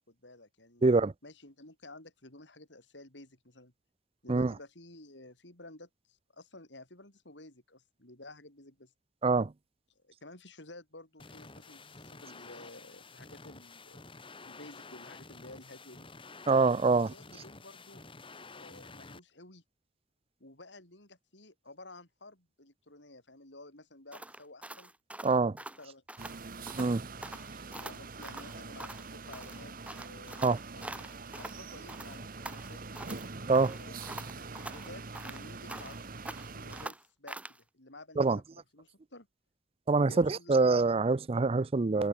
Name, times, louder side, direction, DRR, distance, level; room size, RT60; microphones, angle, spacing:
voice 1, 0.1-0.8 1.2-3.7 4.2-8.9 9.9-14.0 14.4-16.1 16.7-18.0 18.5-19.6 20.4-24.9 25.6-26.0 27.8-30.4 30.7-32.8 33.6-36.0 36.5-38.4 38.7-39.3 40.0-40.8, left 2 dB, 80° left, 6.5 m, -52 dB
voice 2, 0.8-1.1 4.3-4.5 9.2-9.5 16.5-17.1 25.2-25.6 26.8-27.1 30.4-30.6 33.5-33.8 38.2-38.4 39.9-42.1, right 3 dB, 35° right, 0.5 m, -25 dB
sound 1, 11.2-19.2, left 3 dB, 30° left, 3.6 m, -50 dB
sound 2, 24.1-26.4 26.7-26.9 27.2-29.1 29.3-31.6 31.9-33.3 33.5-36.0 36.2-37.6, right 1 dB, 10° right, 2.2 m, -45 dB
sound 3, 26.2-36.9, right 3 dB, 50° right, 1.3 m, -44 dB
head